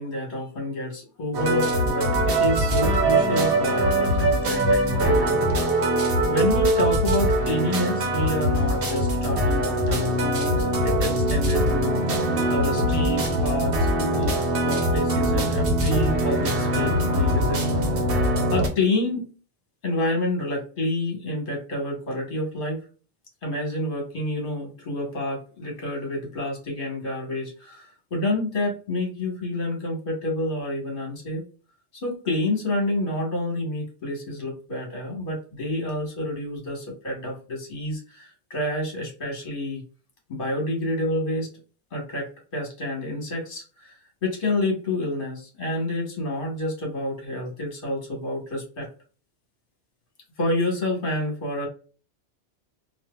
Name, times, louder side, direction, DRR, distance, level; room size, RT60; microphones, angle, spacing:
voice 1, 0.0-5.4 6.3-12.0 12.5-17.6 17.9-18.1 18.5-19.3 19.8-22.8 23.4-31.4 31.9-39.8 40.3-41.5 41.9-48.9 50.4-51.7, left 1 dB, 50° left, 0 dB, 1.4 m, -28 dB
sound 1, 1.3-18.7, right 1 dB, 55° right, 0.9 m, -22 dB
4.1 x 2.4 x 2.3 m, 0.38 s
omnidirectional pair, 1.2 m